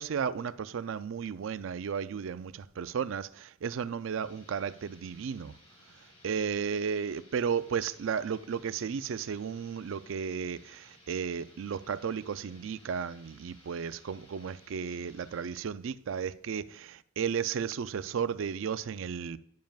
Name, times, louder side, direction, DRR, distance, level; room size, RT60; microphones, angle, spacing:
voice 1, 0.0-5.5 6.2-19.4, right 7 dB, 70° right, 0.4 m, -34 dB
sound 1, 4.2-15.7, left 1 dB, 30° left, 1.7 m, -59 dB
10.5 x 7.3 x 2.4 m
head